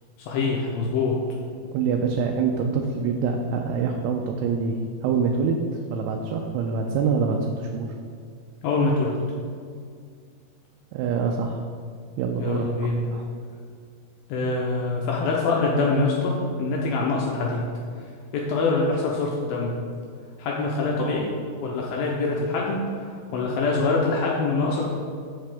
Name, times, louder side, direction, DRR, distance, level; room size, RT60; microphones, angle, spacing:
voice 1, 0.2-1.1 8.6-9.1 12.4-13.0 14.3-17.6 18.3-19.7 20.4-21.3 21.6-24.9, left 3 dB, 80° left, -2 dB, 2.2 m, -24 dB
voice 2, 1.7-5.6 5.9-7.9 10.9-11.6 12.2-12.7 13.1-13.2, right 5 dB, 85° right, 2 dB, 2.6 m, -25 dB
7.5 x 7.4 x 3.5 m, 2.2 s
omnidirectional pair, 4.8 m